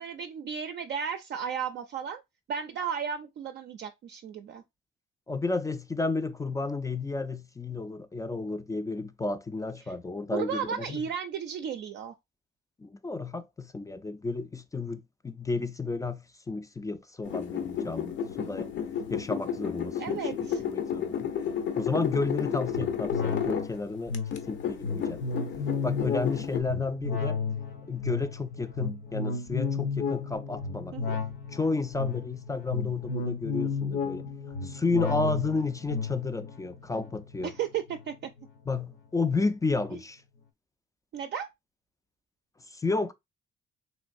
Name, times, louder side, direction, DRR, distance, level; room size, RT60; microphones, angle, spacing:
voice 1, 0.0-2.2 2.5-4.6 9.8-9.9 10.3-12.1 20.0-20.6 30.9-31.2 35.1-35.3 37.4-38.1 39.9-40.0 41.1-41.5, right 7 dB, 60° right, 0.4 m, -34 dB
voice 2, 5.3-11.1 12.8-18.7 19.1-21.3 21.8-25.2 25.8-27.4 27.9-30.9 31.5-34.3 34.6-37.5 38.7-40.2 42.7-43.1, left 3 dB, 15° left, 0.3 m, -32 dB
sound 1, 17.2-23.7 24.1-26.6, left 8 dB, 70° left, 0.6 m, -32 dB
sound 2, 22.7-38.5 38.9-39.0, left 5 dB, 90° left, 1.0 m, -33 dB
3.0 x 3.0 x 2.5 m
cardioid pair, 90°, 20 cm